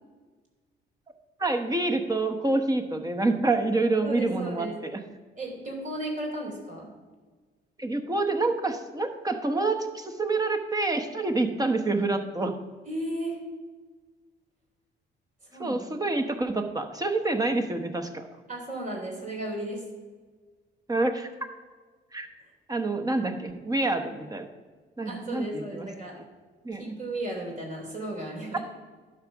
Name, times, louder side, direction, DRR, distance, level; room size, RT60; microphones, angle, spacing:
voice 1, 1.4-5.0 7.8-12.6 15.6-18.3 20.9-21.3 22.1-22.3 22.7-24.5 25.0-25.9 26.6-26.9 28.5-28.6, right 2 dB, 20° right, 6 dB, 1.1 m, -27 dB
voice 2, 4.0-4.8 5.4-6.9 12.9-13.4 15.5-15.8 18.5-19.8 25.0-26.2 26.8-28.6, right 1 dB, 40° right, -1 dB, 3.3 m, -34 dB
11.5 x 4.7 x 6.0 m, 1.4 s
cardioid pair, 90°, 20 cm